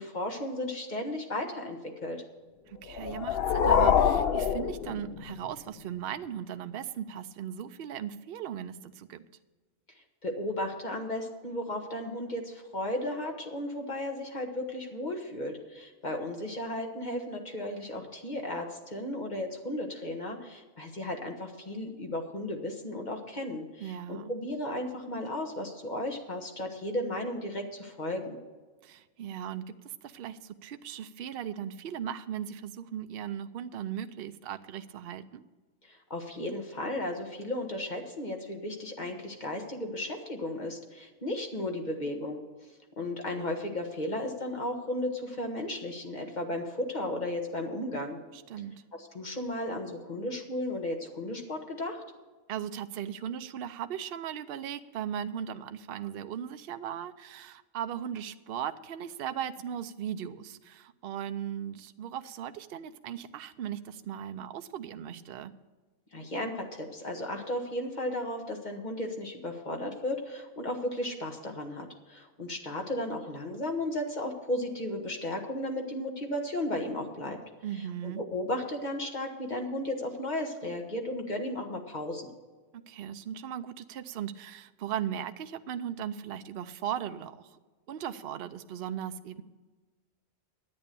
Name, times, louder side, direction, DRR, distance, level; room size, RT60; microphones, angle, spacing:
voice 1, 0.0-2.2 10.2-28.4 35.8-42.4 43.0-48.2 49.0-52.0 66.1-77.4 78.0-82.3, left 1 dB, 35° left, 3 dB, 1.5 m, -34 dB
voice 2, 2.7-9.2 23.8-24.4 28.8-35.4 48.3-48.8 52.5-65.5 77.6-78.2 82.7-87.6 87.9-89.4, right 9 dB, 55° right, 10 dB, 0.7 m, -38 dB
sound 1, 2.9-5.5, left 7 dB, 55° left, 0.7 m, -25 dB
11.0 x 8.7 x 6.8 m, 1.3 s
omnidirectional pair, 1.4 m